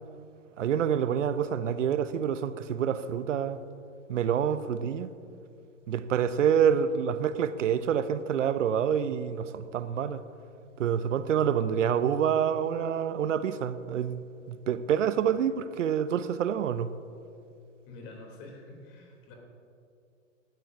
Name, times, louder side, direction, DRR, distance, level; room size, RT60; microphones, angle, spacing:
voice 1, 0.6-3.6 4.1-5.1 5.9-10.2 10.8-16.9, right 8 dB, 65° right, 0.8 m, -27 dB
voice 2, 17.9-19.3, left 2 dB, 35° left, 3.4 m, -47 dB
17.5 x 13.5 x 2.8 m
hypercardioid pair, 120°, 39 cm